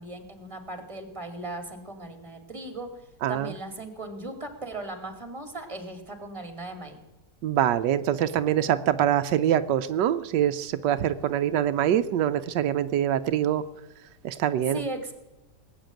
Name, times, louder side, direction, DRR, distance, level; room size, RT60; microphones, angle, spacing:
voice 1, 0.0-2.9 3.3-7.0 14.7-15.1, right 2 dB, 20° right, 6 dB, 2.4 m, -37 dB
voice 2, 3.2-3.6 7.4-13.6 14.2-14.9, right 10 dB, 90° right, 11 dB, 1.3 m, -24 dB
19.0 x 8.1 x 9.0 m, 1.0 s
omnidirectional pair, 1.8 m